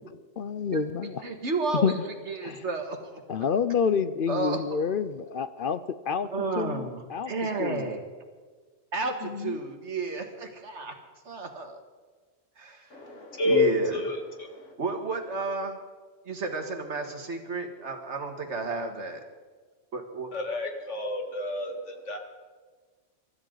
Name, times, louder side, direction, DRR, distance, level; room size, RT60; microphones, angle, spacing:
voice 1, 0.4-1.2 1.8-2.0 2.4-2.6 3.3-5.8 6.1-7.3 7.6-7.9 9.2-9.6, left 6 dB, 55° left, 13 dB, 0.7 m, -28 dB
voice 2, 1.2-1.9 2.3-3.2 4.0-4.6 6.3-8.0 8.9-10.9 11.2-11.8 12.6-12.9 13.4-14.0 14.8-15.8 16.3-19.2 19.9-20.3, right 3 dB, 70° right, 5 dB, 2.0 m, -32 dB
voice 3, 12.9-13.6 13.9-14.7 20.3-22.2, left 2 dB, 80° left, 3 dB, 2.3 m, -29 dB
24.0 x 13.0 x 3.9 m, 1.4 s
omnidirectional pair, 1.2 m